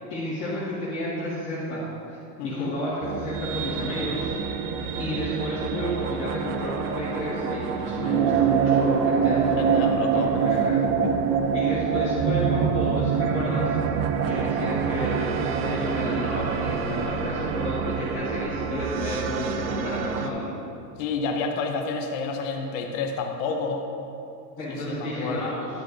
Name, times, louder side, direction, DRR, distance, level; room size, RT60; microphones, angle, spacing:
voice 1, 0.1-1.8 2.1-4.3 5.0-10.8 11.5-13.8 14.3-20.5 24.6-25.7, left 1 dB, 25° left, -11 dB, 1.9 m, -31 dB
voice 2, 2.4-2.7 9.6-10.5 11.0-11.1 21.0-23.8 24.7-25.5, left 4 dB, 50° left, 3 dB, 1.0 m, -30 dB
sound 1, 3.0-20.3, right 6 dB, 40° right, 0.4 m, -26 dB
11.0 x 8.6 x 2.7 m, 2.7 s
supercardioid pair, 150°, 50 cm